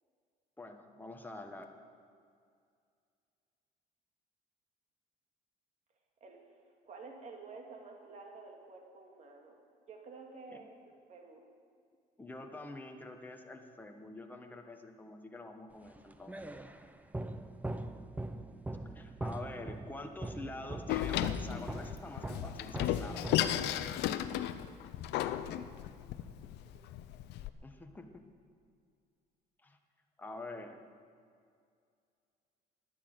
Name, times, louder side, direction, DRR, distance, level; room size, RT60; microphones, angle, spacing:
voice 1, 0.6-1.6 10.5-10.6 12.2-16.4 18.8-23.4 26.0-26.2 27.6-28.1 29.6-29.8 30.2-30.8, left 2 dB, 10° left, 4 dB, 1.3 m, -46 dB
voice 2, 6.8-9.6 9.9-11.4 16.7-16.8 25.2-25.7 26.6-26.9, right 4 dB, 45° right, 2 dB, 2.3 m, -51 dB
sound 1, 15.9-24.0, right 2 dB, 10° right, 0.7 m, -42 dB
Door, 20.9-27.5, left 12 dB, 85° left, 0.6 m, -34 dB
11.5 x 10.5 x 8.0 m, 2.3 s
cardioid pair, 110°, 17 cm